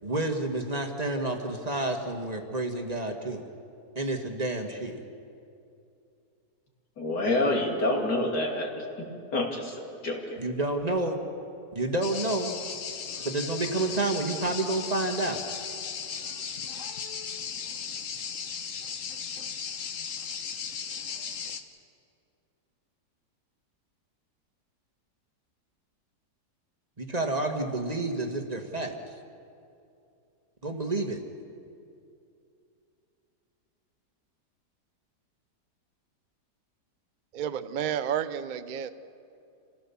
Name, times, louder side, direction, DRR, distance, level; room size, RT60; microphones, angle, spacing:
voice 1, 0.0-3.4 3.9-5.0 10.4-11.1 11.7-12.6 13.2-15.4 27.0-28.9 30.6-31.2, right 2 dB, 25° right, 3 dB, 1.6 m, -29 dB
voice 2, 7.0-10.4, left 1 dB, 75° left, 0 dB, 3.3 m, -28 dB
sound 1, 12.0-21.6, left 6 dB, 55° left, 1.2 m, -36 dB
voice 3, 37.3-38.9, right 9 dB, 55° right, 12 dB, 0.5 m, -31 dB
28.0 x 15.5 x 7.0 m, 2.6 s
omnidirectional pair, 1.8 m